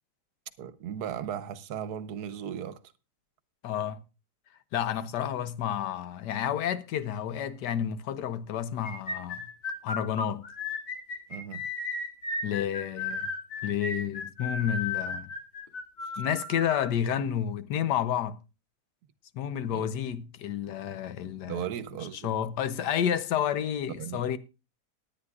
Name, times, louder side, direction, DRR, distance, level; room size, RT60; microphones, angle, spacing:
voice 1, 0.6-2.8 11.3-11.6 16.0-16.1 19.7-19.9 21.5-22.3 24.0-24.3, right 9 dB, 75° right, 1.3 m, -36 dB
voice 2, 3.6-4.0 4.7-9.4 9.8-10.4 12.4-13.3 13.6-15.3 16.2-18.4 19.3-21.6 22.2-24.4, left 9 dB, 85° left, 1.4 m, -30 dB
sound 1, 8.8-16.9, left 3 dB, 65° left, 2.9 m, -34 dB
19.5 x 9.4 x 2.4 m
omnidirectional pair, 1.8 m